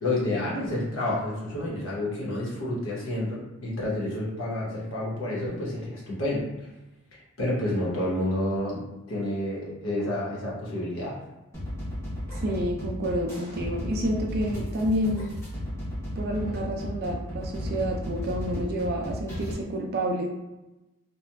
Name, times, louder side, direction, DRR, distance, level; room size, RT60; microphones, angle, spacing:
voice 1, 0.0-6.5 7.4-8.8 9.1-11.2, left 1 dB, 65° left, -6 dB, 0.9 m, -29 dB
sound 1, 11.5-19.5, left 1 dB, 10° left, 0.7 m, -34 dB
voice 2, 12.4-15.3 16.2-20.3, equal, 45° right, 1 dB, 0.4 m, -29 dB
2.8 x 2.2 x 2.2 m, 0.99 s
head